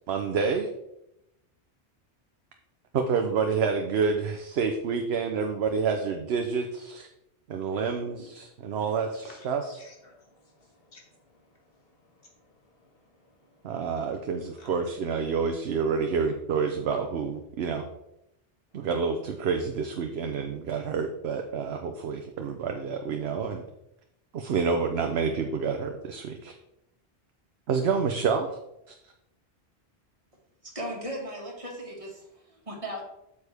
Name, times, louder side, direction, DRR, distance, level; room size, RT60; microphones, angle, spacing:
voice 1, 0.1-0.7 2.9-7.1 7.5-9.7 13.6-17.9 18.7-23.6 24.3-26.5 27.7-28.6 28.9-29.0, right 5 dB, 65° right, 5 dB, 0.9 m, -28 dB
voice 2, 9.2-13.7 14.6-14.7 18.7-18.8, left 2 dB, 55° left, -1 dB, 2.1 m, -56 dB
voice 3, 30.6-33.0, equal, 30° right, -2 dB, 1.9 m, -37 dB
8.1 x 7.0 x 3.4 m, 0.85 s
omnidirectional pair, 1.2 m